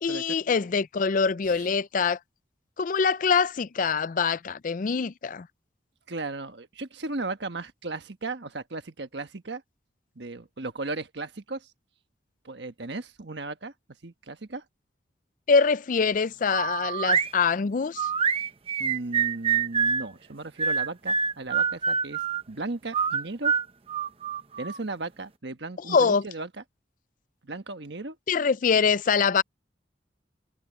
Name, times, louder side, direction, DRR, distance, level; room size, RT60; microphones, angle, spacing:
voice 1, 0.0-2.2 2.8-5.5 15.5-18.1 25.9-26.2 28.3-29.4, left 5 dB, 45° left, 0.4 m, -24 dB
voice 2, 6.1-9.6 10.1-11.7 12.4-13.7 14.0-14.6 18.8-22.2 22.5-23.5 24.6-26.5 27.4-28.2, right 3 dB, 65° right, 1.4 m, -36 dB
sound 1, 16.5-17.3 18.0-20.0 20.6-22.4 22.9-24.8, right 6 dB, 30° right, 0.8 m, -26 dB
head